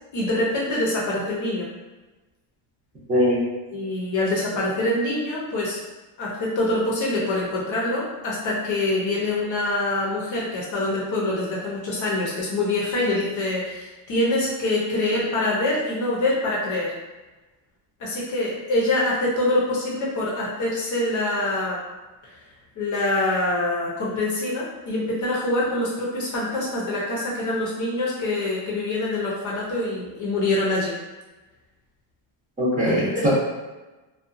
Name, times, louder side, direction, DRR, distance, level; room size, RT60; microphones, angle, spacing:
voice 1, 0.1-1.7 3.7-5.8 6.2-16.9 18.0-21.8 22.8-30.9 32.9-33.3, left 2 dB, 40° left, -5 dB, 0.7 m, -25 dB
voice 2, 3.1-3.4 32.6-33.3, equal, 15° right, -8 dB, 0.8 m, -21 dB
2.6 x 2.3 x 2.6 m, 1.2 s
cardioid pair, 140°, 46 cm